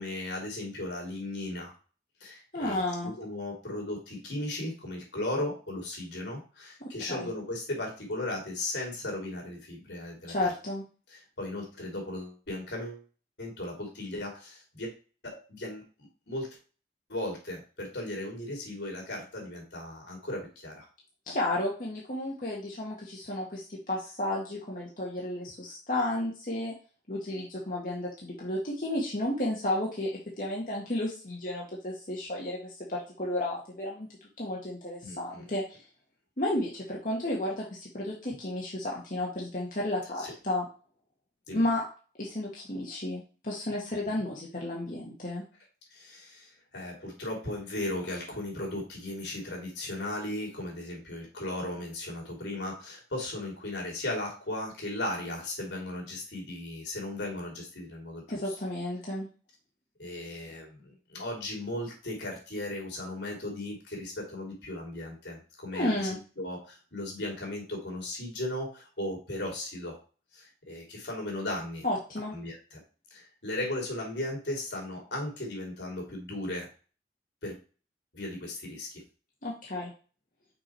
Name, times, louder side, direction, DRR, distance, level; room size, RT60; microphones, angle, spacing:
voice 1, 0.0-1.7 2.2-10.5 11.1-13.0 13.4-14.9 15.2-16.5 17.1-20.8 35.0-35.4 40.2-40.3 41.5-41.6 45.9-58.5 60.0-66.0 66.4-70.0 70.3-71.8 72.3-72.8 73.1-76.7 77.4-77.6 78.1-79.0, left 1 dB, 80° left, 0 dB, 3.1 m, -36 dB
voice 2, 2.5-3.1 6.8-6.9 7.2-7.3 10.3-10.8 21.3-26.7 27.1-34.1 34.4-35.8 36.4-40.6 41.5-41.8 42.2-45.4 58.3-59.3 65.7-66.2 71.8-72.3 79.4-79.9, left 1 dB, 45° left, -4 dB, 1.5 m, -32 dB
6.1 x 4.6 x 4.5 m, 0.36 s
head